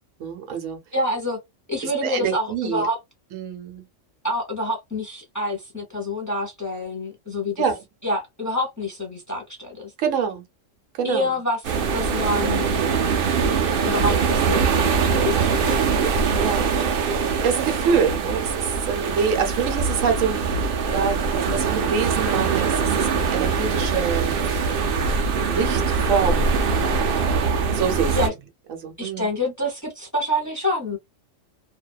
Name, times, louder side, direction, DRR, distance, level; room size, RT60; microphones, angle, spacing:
voice 1, 0.2-0.8 1.8-2.8 3.3-3.8 7.6-7.8 10.0-10.4 11.0-11.3 15.8-16.1 16.4-16.7 17.4-24.6 25.2-26.6 27.7-28.2 28.7-29.3, right 6 dB, 80° right, 1.1 m, -26 dB
voice 2, 0.9-1.4 1.7-3.0 4.2-7.6 8.0-9.9 11.0-12.6 13.8-15.8 16.8-17.2 28.1-28.3 29.0-31.0, left 1 dB, 15° left, 0.8 m, -27 dB
sound 1, 11.6-28.3, right 5 dB, 55° right, 0.7 m, -22 dB
2.6 x 2.2 x 2.2 m
omnidirectional pair, 1.3 m